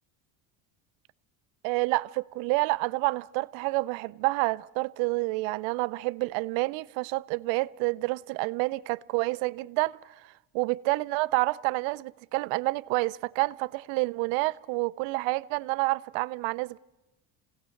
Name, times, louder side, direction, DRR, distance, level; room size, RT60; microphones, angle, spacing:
voice 1, 1.6-10.0 10.5-16.8, right 23 dB, 80° right, 0.7 m, -28 dB
28.0 x 17.0 x 6.4 m
supercardioid pair, 90°, 45 cm